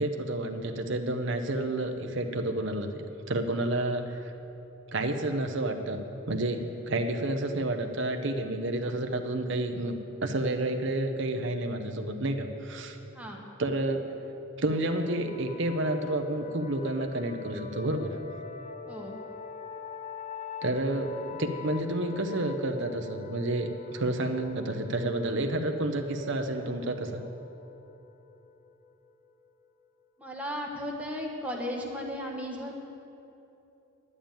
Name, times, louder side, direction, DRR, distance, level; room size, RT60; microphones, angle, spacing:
voice 1, 0.0-4.3 4.9-10.0 10.2-13.0 13.6-14.1 14.6-18.1 20.6-27.2, right 1 dB, 55° right, 5 dB, 0.8 m, -30 dB
sound 1, 14.7-30.0, left 5 dB, 30° left, 0.4 m, -44 dB
voice 2, 18.9-19.2 30.2-32.7, equal, 5° right, -1 dB, 1.2 m, -35 dB
11.0 x 7.2 x 9.0 m, 2.9 s
head